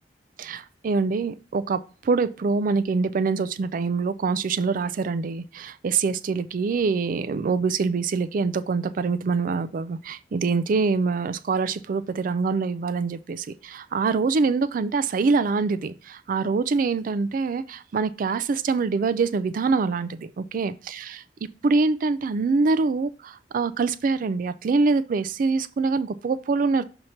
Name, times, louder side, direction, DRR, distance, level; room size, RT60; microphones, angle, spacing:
voice 1, 0.4-1.8 2.0-21.2 21.6-26.8, right 4 dB, 50° right, 0.4 m, -24 dB
6.4 x 2.9 x 5.5 m
head